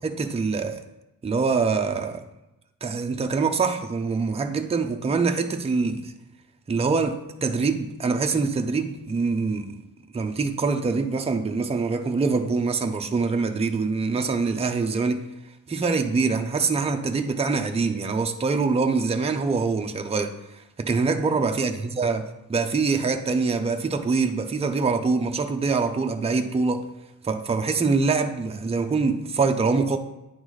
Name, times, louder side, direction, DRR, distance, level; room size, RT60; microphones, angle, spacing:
voice 1, 0.0-0.8 1.2-2.2 2.8-6.1 6.7-9.8 10.1-15.2 15.7-20.3 20.8-22.2 22.5-26.8 27.2-30.0, right 4 dB, 20° right, 5 dB, 0.4 m, -24 dB
9.3 x 3.9 x 3.2 m, 0.95 s
wide cardioid pair, 130°, 35 cm